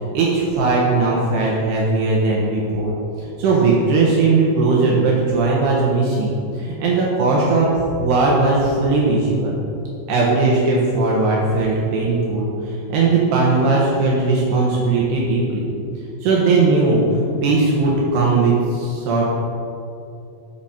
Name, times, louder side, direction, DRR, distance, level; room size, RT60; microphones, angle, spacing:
voice 1, 0.1-2.9 3.2-9.6 10.1-15.6 16.2-19.2, right 3 dB, 70° right, -4 dB, 3.2 m, -18 dB
13.5 x 7.8 x 4.4 m, 2.6 s
omnidirectional pair, 5.2 m